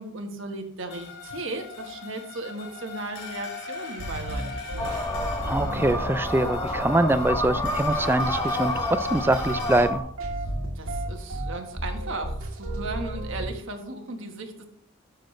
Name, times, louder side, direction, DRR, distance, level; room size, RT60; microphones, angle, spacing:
voice 1, 0.0-4.9 10.7-14.7, right 2 dB, 60° right, 4 dB, 1.3 m, -36 dB
sound 1, 0.9-9.9, left 4 dB, 90° left, 2.7 m, -39 dB
sound 2, 4.0-13.5, right 1 dB, 85° right, 1.8 m, -35 dB
sound 3, 4.8-10.0, left 1 dB, 15° left, 1.0 m, -29 dB
voice 2, 5.4-10.0, right 1 dB, 10° right, 13 dB, 0.3 m, -24 dB
13.0 x 6.6 x 3.2 m, 0.66 s
head